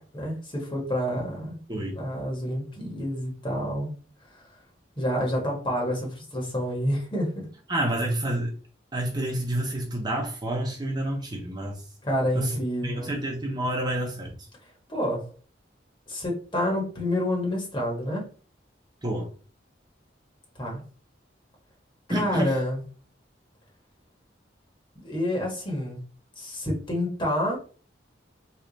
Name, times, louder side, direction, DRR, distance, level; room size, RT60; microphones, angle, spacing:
voice 1, 0.0-1.6 1.9-3.9 4.3-4.4 5.0-7.5 12.0-13.1 14.9-15.3 16.1-18.3 20.6-20.8 22.1-22.8 25.0-26.0 26.4-27.6, equal, 25° left, -2 dB, 1.2 m, -28 dB
voice 2, 1.7-2.1 7.7-8.6 8.9-11.8 12.3-12.5 12.8-14.3 19.0-19.3 22.1-22.5, right 1 dB, 20° right, 0 dB, 0.6 m, -29 dB
3.2 x 2.4 x 3.9 m, 0.38 s
head